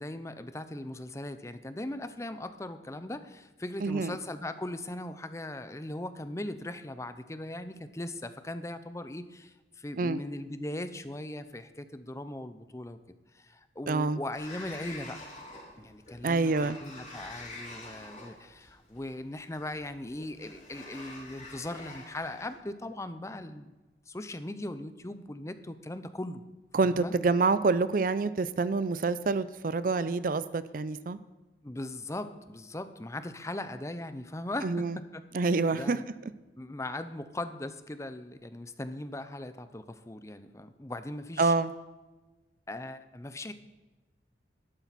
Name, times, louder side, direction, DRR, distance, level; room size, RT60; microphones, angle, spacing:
voice 1, 0.0-13.0 13.3-15.2 15.8-23.7 24.1-26.4 26.8-27.1 31.6-35.2 35.7-36.1 36.6-41.5 42.7-43.5, left 1 dB, 15° left, 11 dB, 0.6 m, -39 dB
voice 2, 3.8-4.1 10.0-10.2 13.9-14.2 16.2-16.8 26.7-31.2 34.6-34.9 35.3-36.0 41.4-41.7, right 3 dB, 50° right, 15 dB, 0.5 m, -27 dB
Sliding door, 14.3-22.5, left 2 dB, 40° left, 3.8 m, -47 dB
12.5 x 11.5 x 4.1 m, 1.2 s
head